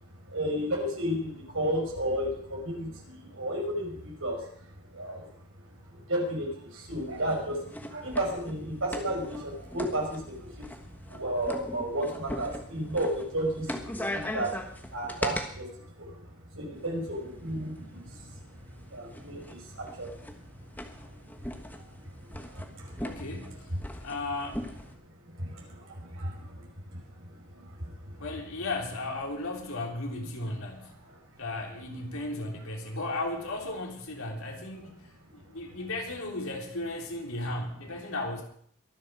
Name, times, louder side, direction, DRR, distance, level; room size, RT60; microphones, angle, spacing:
voice 1, 0.3-4.5 4.9-5.3 5.9-10.7 11.1-14.5 14.9-16.2 16.5-18.3 18.9-20.1 21.0-21.2 21.8-21.9 22.4-23.0 25.4-27.0 27.5-28.1, right 1 dB, 65° right, -1 dB, 5.6 m, -33 dB
sound 1, 6.9-15.5 16.7-24.9, left 1 dB, 10° left, 1.4 m, -40 dB
voice 2, 23.0-24.7 28.2-30.9 31.4-38.4, left 2 dB, 75° left, 1 dB, 3.6 m, -35 dB
22.5 x 8.0 x 6.2 m, 0.62 s
head